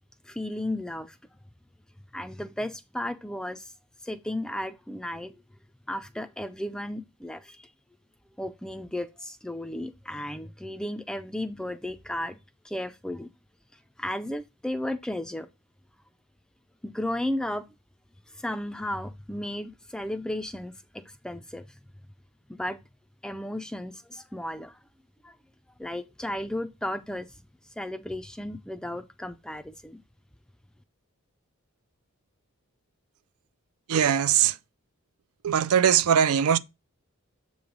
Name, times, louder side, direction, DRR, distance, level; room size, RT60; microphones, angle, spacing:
voice 1, 0.2-1.2 2.1-3.7 4.0-5.3 5.9-7.7 8.4-12.4 12.6-13.3 14.0-15.5 16.8-17.7 18.3-21.8 22.5-22.8 23.2-24.8 25.2-25.3 25.8-27.3 27.8-30.0, left 1 dB, 5° left, 0.3 m, -34 dB
voice 2, 33.9-34.6 35.4-36.6, right 8 dB, 85° right, 0.4 m, -21 dB
7.6 x 3.1 x 5.1 m
head